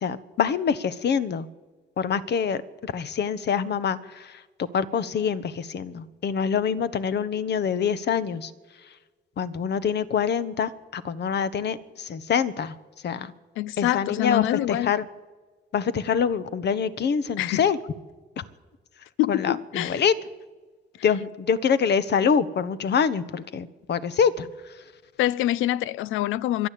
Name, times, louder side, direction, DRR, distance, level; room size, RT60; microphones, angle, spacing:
voice 1, 0.0-1.5 2.0-8.5 9.4-12.7 13.0-13.3 13.8-15.1 15.7-17.8 18.4-18.5 19.3-20.1 21.0-24.5, left 7 dB, 60° left, 1.2 m, -25 dB
voice 2, 13.6-14.9 17.4-17.6 19.2-20.0 25.2-26.7, left 14 dB, 90° left, 0.5 m, -25 dB
26.5 x 11.5 x 8.6 m
cardioid pair, 90°, 20 cm